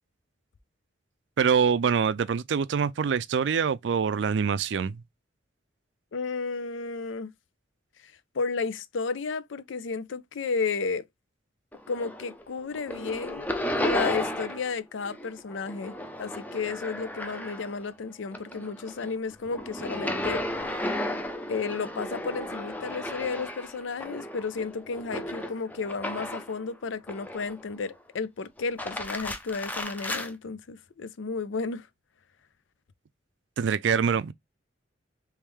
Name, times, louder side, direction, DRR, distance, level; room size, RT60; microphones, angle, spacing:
voice 1, 1.4-5.0 33.6-34.3, right 6 dB, 70° right, 0.4 m, -25 dB
voice 2, 6.1-7.3 8.0-11.1 11.9-13.5 13.8-20.4 21.5-31.9, left 4 dB, 85° left, 0.5 m, -33 dB
sound 1, 11.7-12.4 12.7-14.7 15.0-17.9 18.3-26.6 27.1-27.8 28.6-30.3, left 1 dB, 10° left, 0.5 m, -34 dB
3.5 x 3.2 x 3.1 m
head